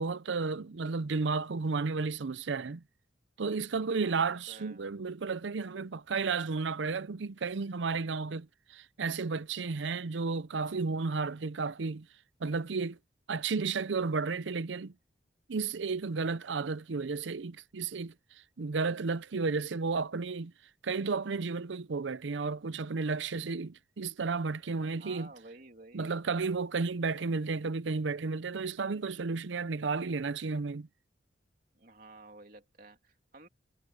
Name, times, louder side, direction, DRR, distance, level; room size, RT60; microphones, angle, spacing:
voice 1, 0.0-2.8 3.4-12.1 12.4-13.0 13.3-14.9 15.5-18.1 18.6-20.5 20.8-25.3 25.9-30.9, right 4 dB, 80° right, 0.6 m, -33 dB
voice 2, 3.9-4.9 24.7-26.3 31.7-33.5, right 2 dB, 50° right, 2.9 m, -53 dB
head